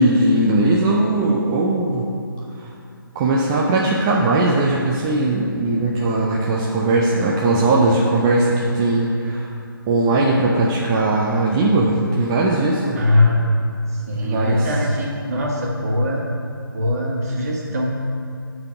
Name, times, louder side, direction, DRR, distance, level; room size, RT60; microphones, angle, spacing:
voice 1, 0.0-2.1 2.6-2.7 3.2-9.5 9.9-13.0 14.1-14.7, right 2 dB, 10° right, -4 dB, 0.3 m, -19 dB
voice 2, 12.9-13.5 14.1-16.3 16.7-17.9, left 1 dB, 40° right, -3 dB, 1.6 m, -21 dB
8.7 x 4.0 x 6.8 m, 2.5 s
figure-of-eight pair, 145°, 12 cm